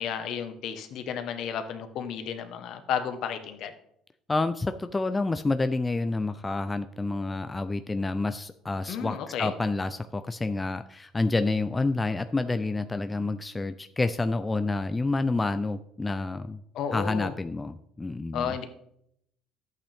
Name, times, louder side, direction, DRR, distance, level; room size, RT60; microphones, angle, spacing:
voice 1, 0.0-3.7 8.9-9.5 16.7-17.3 18.3-18.7, left 8 dB, 65° left, 8 dB, 1.2 m, -32 dB
voice 2, 4.3-16.6 16.9-18.5, left 3 dB, 15° left, 10 dB, 0.4 m, -28 dB
11.5 x 8.2 x 3.5 m, 0.73 s
cardioid pair, 125°, 0 cm